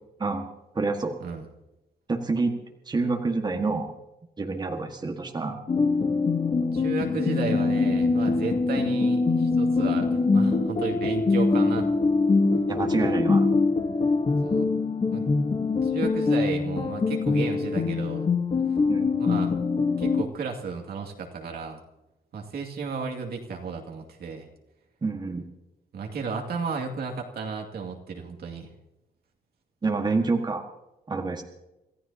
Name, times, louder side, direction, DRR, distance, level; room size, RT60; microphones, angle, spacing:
voice 1, 0.7-1.1 2.1-2.5 2.9-3.9 4.4-5.8 12.7-13.5 18.9-19.4 25.0-25.4 29.8-30.6 31.1-31.4, right 3 dB, 25° right, 3 dB, 1.6 m, -28 dB
evening piano, 5.7-20.2, left 4 dB, 35° left, 1.2 m, -23 dB
voice 2, 6.7-11.9 14.4-14.7 15.1-15.2 15.8-18.3 19.2-19.5 20.0-21.8 22.3-24.5 25.9-28.7, right 5 dB, 70° right, 2 dB, 2.3 m, -33 dB
27.0 x 14.5 x 2.8 m, 0.95 s
cardioid pair, 110°, 17 cm